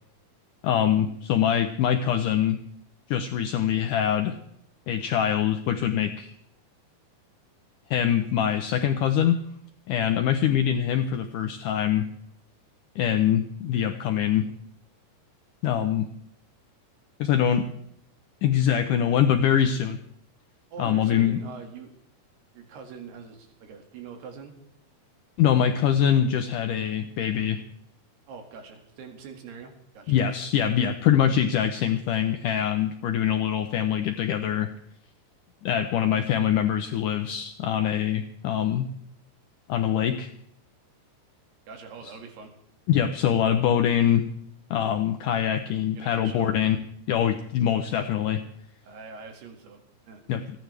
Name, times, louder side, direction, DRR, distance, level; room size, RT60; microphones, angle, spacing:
voice 1, 0.6-2.6 3.1-4.4 4.9-6.3 7.9-9.4 9.9-12.1 13.0-14.5 15.6-16.1 17.2-17.7 18.4-20.0 20.8-21.4 25.4-27.6 30.1-34.7 35.6-38.9 39.7-40.3 42.9-44.3 44.7-46.8 47.1-48.4 50.3-50.4, left 9 dB, 80° left, 7 dB, 1.9 m, -24 dB
voice 2, 20.7-21.9 22.5-24.5 28.3-30.2 41.7-42.5 46.0-46.5 48.8-49.8 50.1-50.2, right 5 dB, 80° right, 4 dB, 4.2 m, -43 dB
29.0 x 10.5 x 3.4 m, 0.71 s
omnidirectional pair, 4.6 m